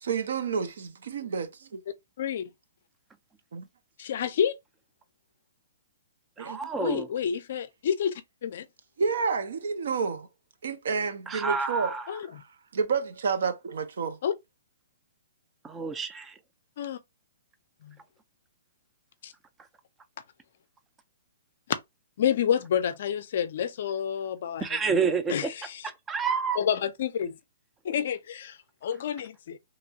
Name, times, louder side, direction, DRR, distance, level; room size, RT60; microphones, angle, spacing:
voice 1, 0.0-1.8 3.5-3.7 6.4-6.6 9.0-10.3 10.6-12.0 12.4-12.5 12.7-14.2, right 5 dB, 70° right, 0.6 m, -29 dB
voice 2, 2.2-2.5 4.0-4.6 6.8-8.1 8.4-8.7 12.1-12.3 14.2-14.3 16.8-17.0 17.8-18.0 19.2-19.3 22.2-24.7 25.3-25.7 26.6-27.4 27.8-29.6, left 8 dB, 55° left, 0.4 m, -29 dB
voice 3, 6.4-7.1 11.3-12.2 15.6-16.4 24.6-25.5 25.8-26.6, right 5 dB, 15° right, 0.3 m, -29 dB
2.9 x 2.3 x 2.7 m
hypercardioid pair, 150°, 0 cm